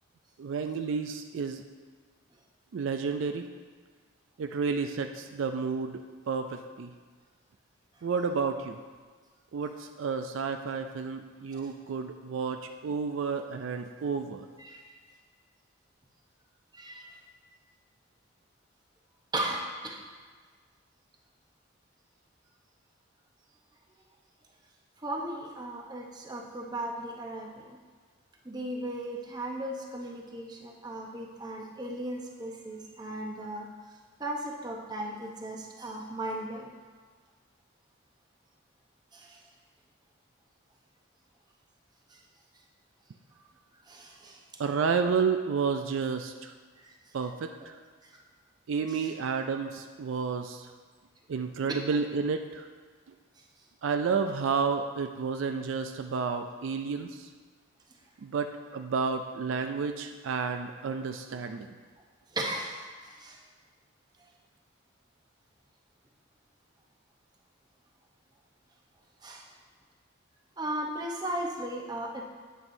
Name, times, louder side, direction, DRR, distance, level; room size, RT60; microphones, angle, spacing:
voice 1, 0.4-1.6 2.7-3.5 4.4-6.0 6.3-6.9 8.0-8.8 9.5-14.5 44.6-46.5 47.1-47.7 48.7-50.7 51.3-52.7 53.8-57.3 58.2-58.5 58.7-61.7, right 5 dB, 65° right, 6 dB, 0.4 m, -31 dB
voice 2, 14.6-14.9 16.7-17.1 19.3-20.0 25.0-27.8 28.4-33.7 34.2-36.7 39.1-39.4 42.1-42.2 43.9-44.4 46.8-46.9 47.6-47.7 48.0-48.2 48.9-49.1 51.7-51.8 62.3-62.9 63.2-63.4 69.2-69.5 70.6-72.3, right 1 dB, 20° right, 0 dB, 0.8 m, -36 dB
9.1 x 8.8 x 2.7 m, 1.5 s
head